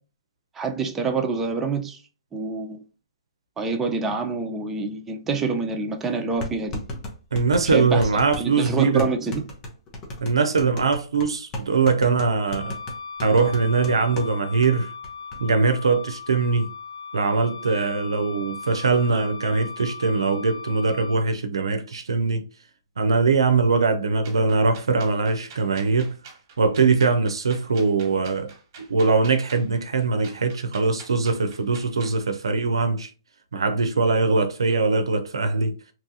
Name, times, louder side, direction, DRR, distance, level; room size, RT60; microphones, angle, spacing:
voice 1, 0.6-2.0 2.3-2.8 3.6-6.8 7.6-8.0 8.4-9.4, right 4 dB, 10° right, 0.5 m, -26 dB
sound 1, 5.5-5.6 6.4-14.3 14.6-14.7 15.0-15.4, left 1 dB, 25° left, 0.8 m, -34 dB
voice 2, 7.3-9.1 10.2-12.8 13.2-14.9 15.4-16.7 17.1-22.4 23.0-26.1 26.6-28.5 28.9-33.1 33.5-35.7, right 4 dB, 85° right, 0.5 m, -22 dB
Wind instrument woodwind instrument, 12.5-21.3, left 5 dB, 75° left, 0.9 m, -38 dB
sound 2, 24.2-32.2, right 5 dB, 45° right, 1.1 m, -46 dB
3.0 x 2.4 x 2.7 m
hypercardioid pair, 135°, 3 cm